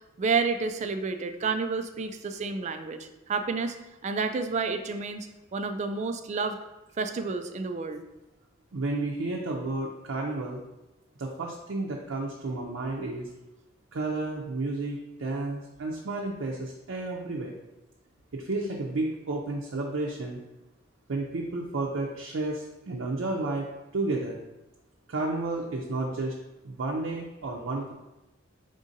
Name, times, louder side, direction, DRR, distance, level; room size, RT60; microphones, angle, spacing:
voice 1, 0.2-3.8 4.0-6.6 7.0-8.0, right 4 dB, 35° right, 8 dB, 0.3 m, -30 dB
voice 2, 8.7-10.6 11.2-13.3 13.9-17.6 18.3-20.4 21.1-23.7 23.9-24.4 25.1-26.3 26.6-27.9, right 2 dB, 90° right, -2 dB, 0.6 m, -31 dB
5.0 x 3.6 x 2.7 m, 0.98 s
head